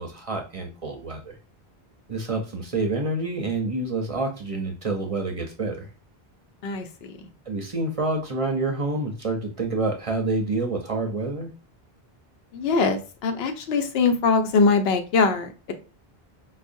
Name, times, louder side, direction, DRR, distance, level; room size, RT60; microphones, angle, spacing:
voice 1, 0.0-1.3 2.1-5.9 7.5-11.5, right 2 dB, 45° right, 2 dB, 0.5 m, -28 dB
voice 2, 6.6-7.2 12.5-15.7, left 4 dB, 80° left, 8 dB, 0.8 m, -22 dB
4.8 x 2.0 x 2.5 m, 0.34 s
omnidirectional pair, 1.0 m